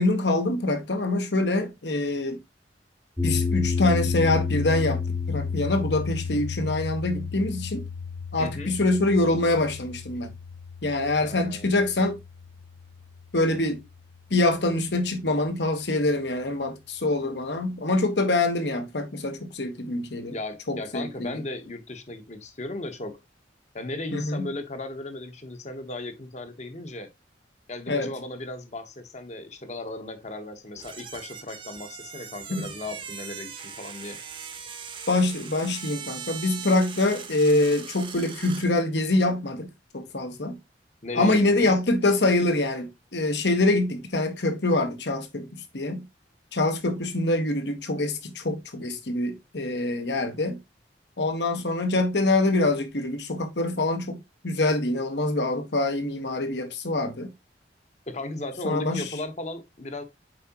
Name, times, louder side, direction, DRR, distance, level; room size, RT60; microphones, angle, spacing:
voice 1, 0.0-2.4 3.2-7.8 8.3-10.3 10.8-12.2 13.3-13.8 14.3-20.3 20.7-21.3 24.1-24.5 27.9-28.1 32.5-32.7 35.1-40.6 41.1-46.1 46.5-50.6 51.2-57.3 58.6-59.1, left 2 dB, 70° left, 1.3 m, -25 dB
sound 1, 3.2-13.4, left 5 dB, 10° left, 0.9 m, -31 dB
voice 2, 8.4-8.7 11.2-11.7 20.3-23.2 23.7-27.1 27.7-34.2 41.0-41.8 58.1-60.0, left 2 dB, 40° left, 1.1 m, -36 dB
sound 2, 30.8-38.7, right 6 dB, 30° right, 1.0 m, -40 dB
7.5 x 4.9 x 2.9 m
head